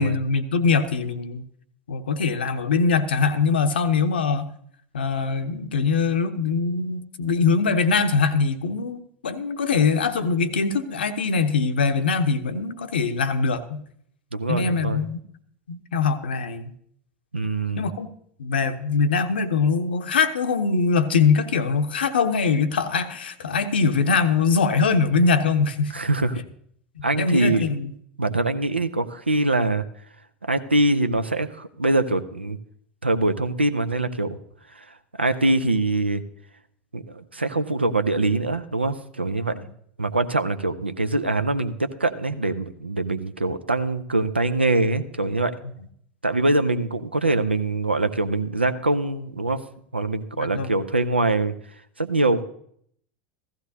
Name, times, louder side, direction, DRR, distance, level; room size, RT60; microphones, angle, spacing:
voice 1, 0.0-1.4 1.9-4.5 4.9-13.8 14.5-15.2 15.7-16.7 17.8-18.1 18.4-25.9 27.0-27.9 39.5-39.7 50.4-50.8, left 5 dB, 70° left, 9 dB, 0.7 m, -22 dB
voice 2, 14.3-15.0 17.3-17.9 25.9-26.4 27.0-27.6 28.2-29.8 30.5-32.6 33.0-34.4 34.8-34.9 35.2-36.2 36.9-39.6 40.0-45.5 46.2-49.6 49.9-51.5 52.0-52.4, right 2 dB, 85° right, 11 dB, 0.6 m, -23 dB
15.0 x 14.5 x 2.7 m, 0.66 s
figure-of-eight pair, 80°, 6 cm